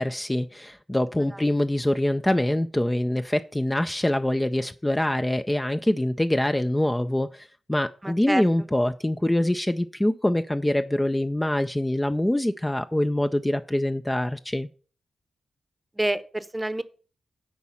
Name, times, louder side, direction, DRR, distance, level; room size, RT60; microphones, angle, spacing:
voice 1, 0.0-14.7, left 1 dB, 15° left, 0.5 m, -24 dB
voice 2, 8.0-8.4 16.0-16.8, right 1 dB, 15° right, 0.9 m, -27 dB
8.4 x 4.7 x 7.1 m
supercardioid pair, 45°, 0 cm